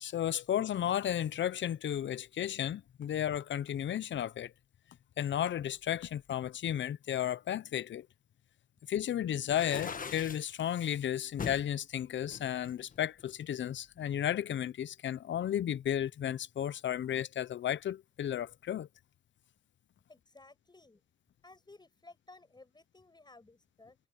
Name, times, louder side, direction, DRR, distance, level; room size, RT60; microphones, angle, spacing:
voice 1, 0.0-4.5 5.2-8.1 8.9-18.9, left 10 dB, 70° left, 0.6 m, -33 dB
sound 1, 9.5-10.5 11.4-11.7 12.3-13.4, left 6 dB, 45° left, 1.2 m, -41 dB
voice 2, 20.1-21.0 21.4-24.0, left 2 dB, 20° left, 7.5 m, -57 dB
cardioid pair, 95°, 20 cm